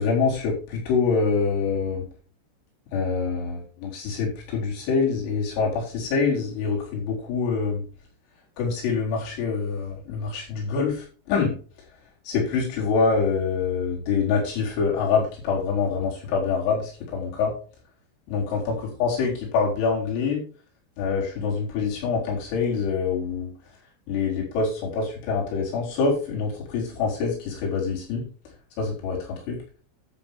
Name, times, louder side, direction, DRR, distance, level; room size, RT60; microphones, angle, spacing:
voice 1, 0.0-2.0 2.9-7.8 8.6-11.6 12.3-17.5 18.3-18.7 19.0-20.4 21.0-23.5 24.1-28.2 28.8-29.6, left 5 dB, 85° left, -5 dB, 6.7 m, -25 dB
12.0 x 8.2 x 3.6 m, 0.39 s
omnidirectional pair, 5.8 m